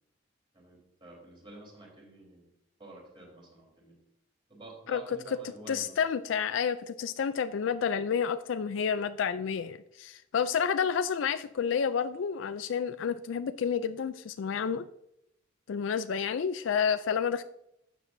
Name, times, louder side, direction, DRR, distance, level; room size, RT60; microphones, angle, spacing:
voice 1, 0.5-2.5 2.8-3.9 4.5-6.0, right 2 dB, 25° right, -2 dB, 3.6 m, -49 dB
voice 2, 5.7-14.8 15.7-17.4, left 7 dB, 75° left, 12 dB, 0.4 m, -30 dB
12.5 x 7.6 x 2.7 m, 0.81 s
head